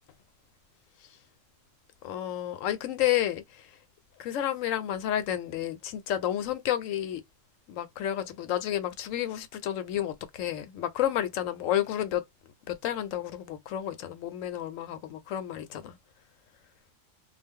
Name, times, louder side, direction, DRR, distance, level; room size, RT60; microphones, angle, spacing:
voice 1, 2.0-3.4 4.2-7.2 7.7-12.2 12.7-16.0, left 11 dB, 85° left, 1.0 m, -31 dB
2.3 x 2.0 x 3.5 m
omnidirectional pair, 1.3 m